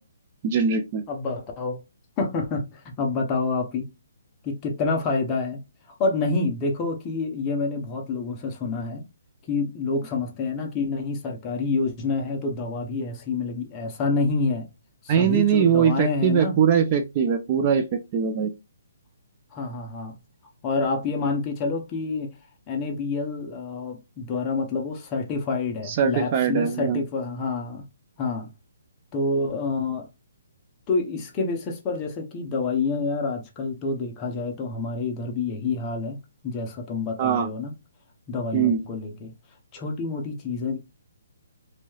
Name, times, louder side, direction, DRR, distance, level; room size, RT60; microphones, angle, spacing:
voice 1, 0.4-1.0 15.1-18.5 25.9-27.0 37.2-37.5 38.5-38.8, right 7 dB, 30° right, 0.3 m, -21 dB
voice 2, 1.1-1.8 2.2-3.9 4.4-5.6 6.0-9.0 9.5-14.7 15.0-16.6 19.5-20.1 20.6-22.3 22.7-27.8 28.2-28.5 29.1-30.1 30.9-36.2 36.4-37.7 38.3-39.3 39.7-40.8, left 3 dB, 20° left, 0.7 m, -28 dB
3.0 x 2.7 x 2.3 m
hypercardioid pair, 160°, 0 cm